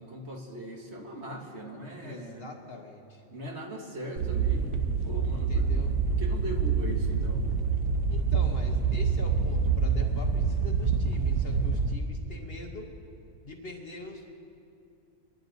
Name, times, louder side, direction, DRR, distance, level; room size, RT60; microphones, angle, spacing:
voice 1, 0.0-2.5 3.3-4.7 5.0-5.7 6.2-7.4, equal, 50° right, 0 dB, 1.8 m, -39 dB
voice 2, 2.0-3.2 5.3-6.0 8.1-12.9 13.4-14.3, left 3 dB, 45° left, 1 dB, 1.2 m, -43 dB
sound 1, 4.2-11.9, right 5 dB, 90° right, 1.3 m, -26 dB
24.0 x 10.5 x 4.0 m, 2.5 s
omnidirectional pair, 1.5 m